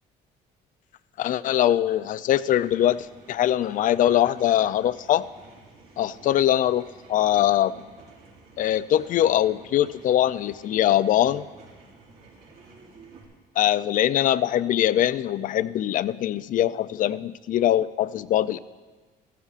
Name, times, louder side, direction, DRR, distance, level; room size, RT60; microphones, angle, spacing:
voice 1, 1.2-5.3 6.0-7.8 8.6-11.4 13.6-18.6, left 12 dB, 55° left, 16 dB, 0.4 m, -22 dB
sound 1, 2.3-13.2, right 3 dB, 75° right, 3.6 m, -51 dB
14.0 x 14.0 x 2.5 m, 1.3 s
cardioid pair, 110°, 17 cm